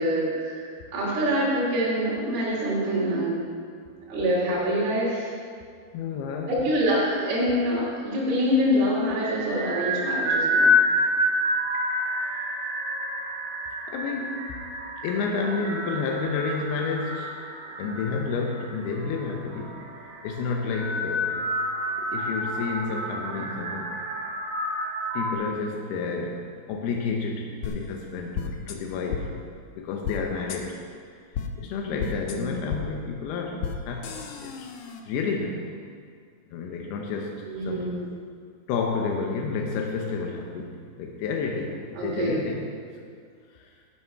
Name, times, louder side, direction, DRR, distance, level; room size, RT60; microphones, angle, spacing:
voice 1, 0.0-3.5 4.1-5.3 6.5-10.7 32.0-32.6 37.5-38.1 42.0-42.4, equal, 75° right, -6 dB, 4.5 m, -25 dB
voice 2, 5.9-6.5 13.9-14.6 15.0-17.4 17.8-19.8 20.2-21.5 22.0-24.0 25.1-29.3 29.8-30.8 31.6-34.7 35.1-35.8 36.5-38.0 38.7-42.7 43.5-43.7, left 4 dB, 90° left, 1 dB, 2.9 m, -30 dB
sound 1, 9.2-25.3, left 1 dB, 55° right, 1.8 m, -28 dB
sound 2, 27.6-27.7 28.3-28.8 29.1-29.2 30.0-30.2 30.5-30.6 31.3-31.5 32.0-32.4 32.7-32.8 33.6-33.7 34.0-35.0, left 8 dB, 75° left, 1.9 m, -32 dB
13.5 x 7.7 x 5.7 m, 2.2 s
omnidirectional pair, 4.5 m